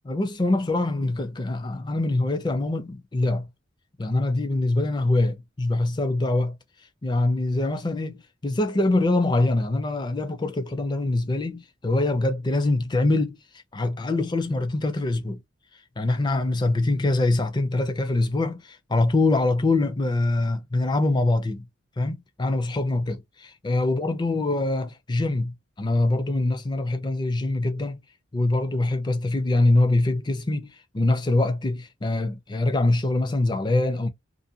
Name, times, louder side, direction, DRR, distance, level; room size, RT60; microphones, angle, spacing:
voice 1, 0.1-3.5 4.0-6.5 7.0-13.4 13.7-15.4 16.0-21.6 22.0-23.2 23.6-28.0 28.3-30.7 30.9-34.1, left 2 dB, 20° left, 0.4 m, -24 dB
2.5 x 2.1 x 2.7 m
head